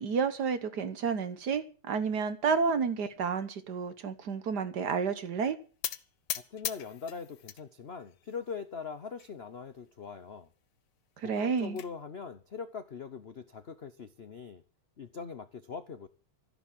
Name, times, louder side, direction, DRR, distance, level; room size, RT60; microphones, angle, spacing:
voice 1, 0.0-5.6 11.2-11.8, right 5 dB, 55° right, 1.6 m, -30 dB
sound 1, 5.8-7.6 8.0-8.6 9.2-9.3 9.6-9.7 10.0-10.1 11.2-11.9, left 11 dB, 75° left, 1.7 m, -39 dB
voice 2, 6.5-10.5 11.2-14.6 15.0-16.1, left 5 dB, 55° left, 0.6 m, -42 dB
13.5 x 10.5 x 7.5 m
omnidirectional pair, 2.3 m